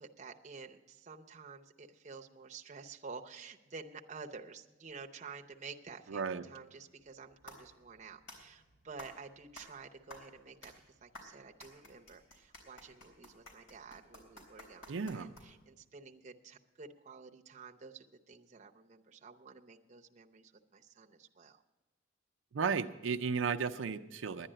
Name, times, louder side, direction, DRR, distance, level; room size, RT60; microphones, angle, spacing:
voice 1, 0.0-21.6, right 4 dB, 40° right, 3 dB, 0.7 m, -51 dB
voice 2, 6.1-6.4 14.9-15.3 22.5-24.5, right 5 dB, 85° right, 7 dB, 0.5 m, -34 dB
sound 1, 7.0-15.8, left 1 dB, 80° left, 3.6 m, -55 dB
11.0 x 10.0 x 7.6 m, 1.1 s
head